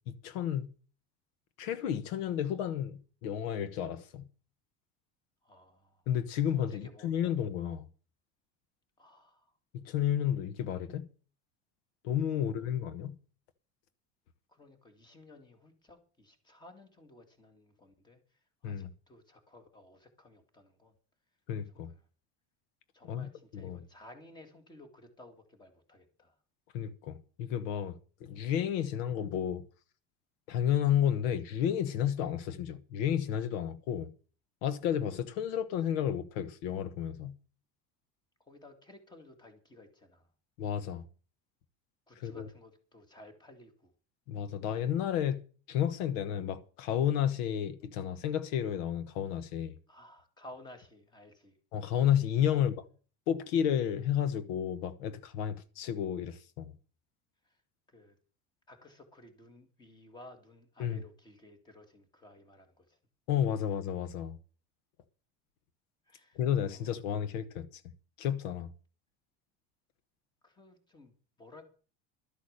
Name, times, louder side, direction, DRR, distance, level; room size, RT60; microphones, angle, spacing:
voice 1, 0.1-0.7 1.6-4.2 6.1-7.8 9.7-11.0 12.0-13.1 18.6-18.9 21.5-21.9 23.1-23.8 26.7-29.6 30.5-34.1 34.6-37.3 40.6-41.0 42.2-42.5 44.3-45.4 45.7-49.8 51.7-52.7 53.3-56.7 60.8-61.0 63.3-64.4 66.3-67.7 68.2-68.7, left 9 dB, 90° left, 1.1 m, -31 dB
voice 2, 5.4-6.0 6.5-7.3 9.0-9.5 12.3-12.8 14.5-20.9 21.7-22.1 22.9-26.4 38.4-40.3 42.1-43.9 49.9-51.6 52.5-52.6 57.4-57.6 57.9-58.1 58.7-63.0 66.1-66.4 66.7-66.9 70.4-71.7, left 2 dB, 15° left, 2.0 m, -55 dB
12.5 x 8.4 x 6.6 m
cardioid pair, 170°, 29 cm